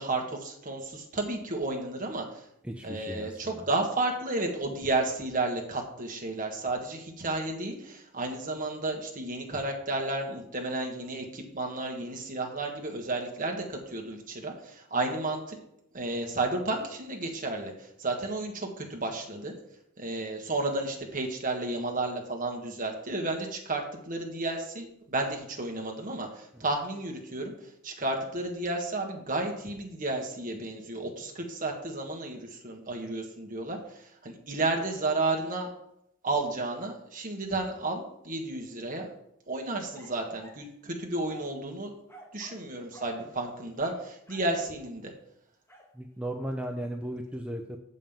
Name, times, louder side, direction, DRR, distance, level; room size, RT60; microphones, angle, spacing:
voice 1, 0.0-2.5 2.8-15.6 15.9-19.5 20.0-35.7 36.2-39.1 39.5-41.9 42.3-45.1, right 2 dB, 40° right, 2 dB, 1.6 m, -32 dB
voice 2, 2.6-3.6 45.9-47.8, right 1 dB, 5° right, 4 dB, 0.5 m, -36 dB
sound 1, 39.9-40.7 41.3-41.6 42.1-42.7 42.9-43.2 43.8-44.6 45.7-45.9, equal, 15° left, 1.7 m, -52 dB
7.3 x 5.4 x 7.3 m, 0.77 s
head